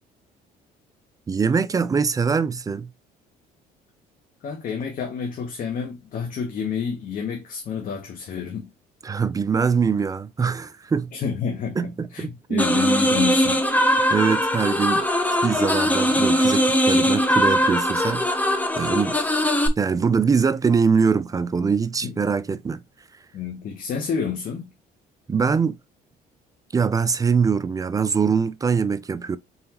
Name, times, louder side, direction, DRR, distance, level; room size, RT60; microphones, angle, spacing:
voice 1, 1.3-2.9 9.0-11.1 11.8-12.8 14.1-15.0 15.4-18.2 18.8-19.1 19.8-22.8 25.3-25.8 26.7-29.4, right 5 dB, 20° right, 0.4 m, -23 dB
voice 2, 4.4-8.7 11.1-11.8 12.1-13.6 19.1-19.2 22.0-22.1 23.3-24.7, left 6 dB, 55° left, 1.0 m, -29 dB
sound 1, 12.6-19.7, equal, 10° left, 0.8 m, -20 dB
4.0 x 3.8 x 2.9 m
cardioid pair, 110°, 17 cm